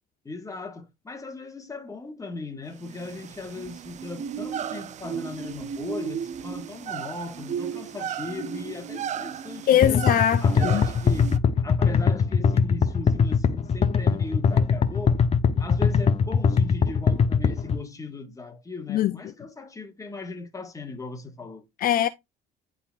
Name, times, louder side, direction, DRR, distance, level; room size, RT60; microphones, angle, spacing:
voice 1, 0.2-10.1 10.4-11.3 11.6-15.2 15.6-21.6, left 3 dB, 20° left, 1.6 m, -38 dB
sound 1, 2.8-11.4, right 8 dB, 45° right, 0.5 m, -35 dB
voice 2, 9.7-10.8 18.9-19.2 21.8-22.1, left 11 dB, 60° left, 0.5 m, -21 dB
sound 2, 9.8-17.8, left 6 dB, 40° left, 0.9 m, -21 dB
11.0 x 4.0 x 2.4 m
cardioid pair, 110°, 17 cm